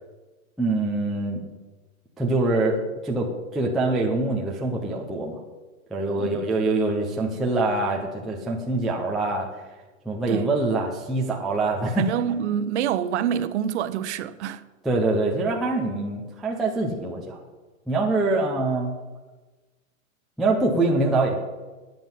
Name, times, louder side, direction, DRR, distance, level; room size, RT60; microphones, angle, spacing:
voice 1, 0.6-1.5 2.2-2.8 3.0-5.4 5.9-9.5 10.1-12.1 14.8-17.4 17.9-18.9 20.4-21.4, right 2 dB, ahead, 0.3 m, -24 dB
voice 2, 12.0-14.6, right 9 dB, 55° right, 0.9 m, -26 dB
13.5 x 9.2 x 5.5 m
hypercardioid pair, 140°, 42 cm